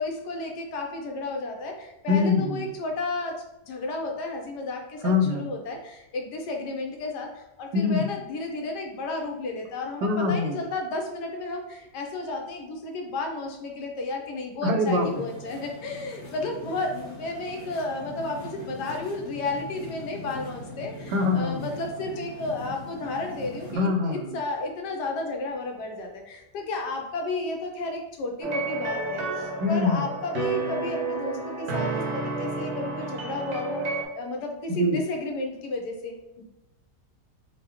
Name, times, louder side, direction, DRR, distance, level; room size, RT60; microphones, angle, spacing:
voice 1, 0.0-36.4, left 2 dB, 80° left, 3 dB, 1.3 m, -33 dB
voice 2, 2.1-2.6 5.0-5.5 7.7-8.0 10.0-10.6 14.6-15.2 21.1-21.7 23.7-24.3 29.6-30.1 34.7-35.0, left 3 dB, 90° right, 2 dB, 1.2 m, -24 dB
sound 1, 14.9-23.8, left 1 dB, 40° left, 0.9 m, -41 dB
sound 2, 28.4-34.0, right 3 dB, 55° right, 0.9 m, -31 dB
4.6 x 2.2 x 2.9 m, 0.98 s
omnidirectional pair, 1.8 m